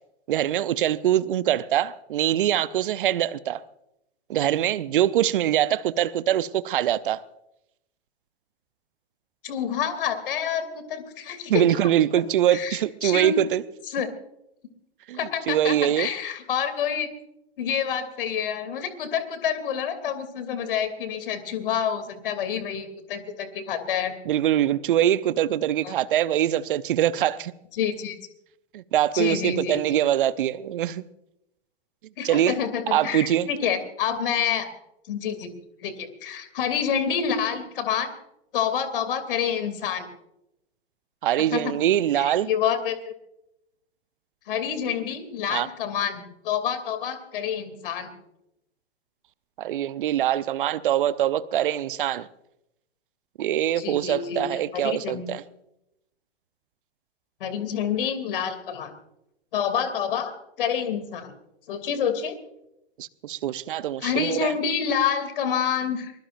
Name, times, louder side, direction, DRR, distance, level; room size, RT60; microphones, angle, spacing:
voice 1, 0.3-3.6 4.3-7.2 11.5-13.6 15.1-15.2 15.5-16.1 24.3-27.5 28.7-31.0 32.2-32.5 32.9-33.5 41.2-42.5 45.5-45.7 49.6-52.3 53.4-55.4 63.0-64.5, right 11 dB, 50° right, 0.8 m, -23 dB
voice 2, 9.4-11.9 12.5-13.3 13.9-14.1 15.2-17.1 17.6-24.1 25.8-25.9 27.7-28.2 29.1-30.0 32.2-34.7 35.1-35.5 35.8-38.1 38.5-40.1 41.5-41.7 42.2-43.0 44.5-48.1 53.8-55.3 57.4-58.9 59.5-61.3 61.7-62.4 64.0-66.1, left 8 dB, 55° left, 2.9 m, -28 dB
23.5 x 21.5 x 2.6 m
figure-of-eight pair, 105°, 33 cm